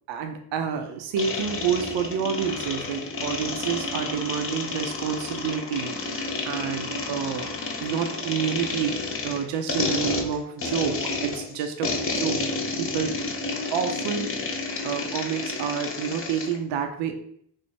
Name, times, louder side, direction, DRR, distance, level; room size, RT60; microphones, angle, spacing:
voice 1, 0.1-7.5 7.8-12.4 12.8-13.2 13.7-17.1, right 7 dB, 80° right, 6 dB, 0.5 m, -29 dB
sound 1, 1.2-16.6, left 3 dB, 30° left, 0.6 m, -30 dB
3.1 x 2.0 x 4.2 m, 0.67 s
cardioid pair, 80°, 43 cm